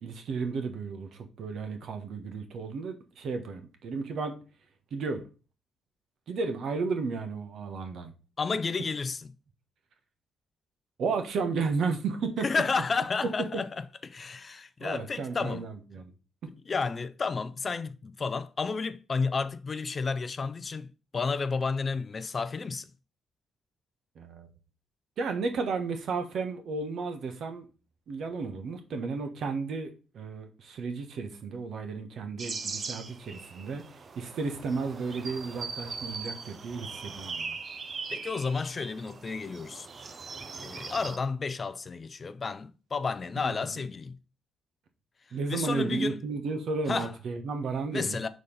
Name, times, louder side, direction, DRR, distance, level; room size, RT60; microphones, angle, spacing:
voice 1, 0.0-4.4 4.9-5.2 6.3-8.1 11.0-12.5 14.8-16.1 24.2-24.5 25.2-27.6 28.1-33.8 34.2-37.6 43.4-43.5 45.3-48.2, right 4 dB, 65° right, 1.2 m, -33 dB
voice 2, 8.4-9.3 12.4-13.7 14.0-15.6 16.7-20.9 21.1-22.9 38.1-39.9 40.6-44.2 45.5-46.2 46.9-47.1 47.9-48.3, left 4 dB, 35° left, 0.5 m, -31 dB
sound 1, 32.4-41.2, right 4 dB, 40° right, 0.7 m, -40 dB
5.1 x 4.1 x 5.5 m
cardioid pair, 90°, 0 cm